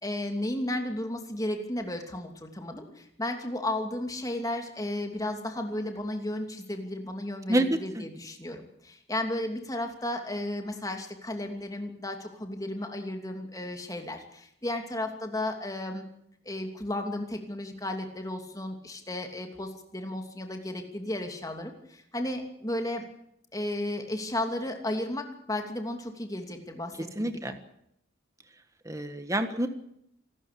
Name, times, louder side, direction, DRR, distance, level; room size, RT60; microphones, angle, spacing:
voice 1, 0.0-16.1 16.4-23.0 23.5-27.6, left 1 dB, 15° left, 4 dB, 2.8 m, -34 dB
voice 2, 27.2-27.5 28.9-29.7, right 1 dB, 15° right, 8 dB, 1.4 m, -27 dB
27.0 x 13.0 x 8.6 m, 0.75 s
head